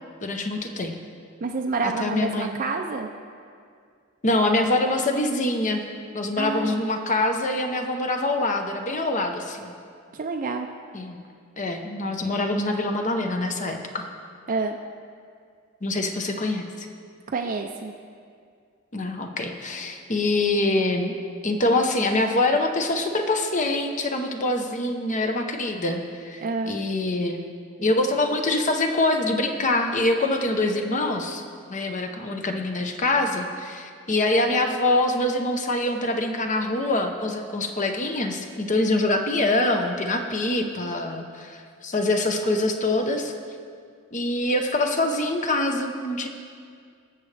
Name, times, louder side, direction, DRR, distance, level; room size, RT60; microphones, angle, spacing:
voice 1, 0.2-1.0 1.8-2.5 4.2-5.8 6.1-9.8 10.9-11.2 11.6-14.1 15.8-16.9 18.9-21.1 21.4-27.4 27.8-31.4 31.7-43.3 44.1-46.3, left 2 dB, 35° left, 5 dB, 0.8 m, -24 dB
voice 2, 1.4-3.1 6.4-6.8 10.1-10.7 14.5-14.8 17.3-17.9 26.4-26.7, right 4 dB, 40° right, 3 dB, 0.5 m, -28 dB
20.5 x 7.2 x 3.3 m, 2.2 s
head